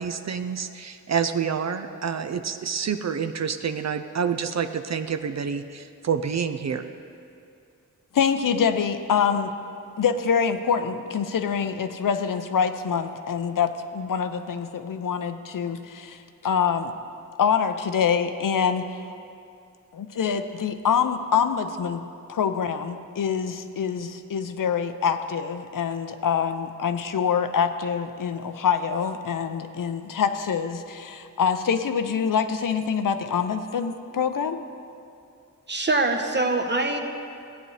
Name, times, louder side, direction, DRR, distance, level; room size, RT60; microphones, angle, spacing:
voice 1, 0.0-6.8, right 7 dB, 55° right, 9 dB, 0.5 m, -28 dB
voice 2, 8.1-9.5 10.0-16.9 17.4-19.1 19.9-22.0 22.3-34.6, left 7 dB, 70° left, 8 dB, 0.6 m, -25 dB
voice 3, 35.7-37.0, right 2 dB, 30° right, 4 dB, 1.0 m, -23 dB
15.0 x 9.0 x 3.2 m, 2.5 s
wide cardioid pair, 65°, 33 cm